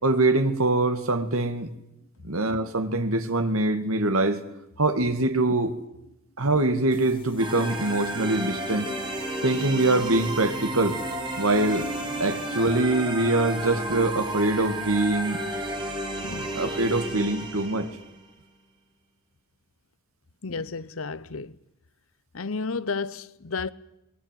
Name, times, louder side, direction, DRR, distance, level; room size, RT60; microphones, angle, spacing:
voice 1, 0.0-1.7 2.2-4.4 4.8-5.7 6.4-8.9 9.4-11.0 11.4-11.9 12.2-15.4 16.6-17.9, right 2 dB, 80° right, 2.2 m, -23 dB
sound 1, 6.9-12.8, left 1 dB, 25° left, 2.4 m, -41 dB
sound 2, 7.4-18.1, right 1 dB, 20° right, 4.2 m, -32 dB
voice 2, 16.2-16.6 20.4-21.6 22.3-23.7, left 4 dB, 70° left, 0.9 m, -32 dB
23.5 x 20.0 x 9.3 m
head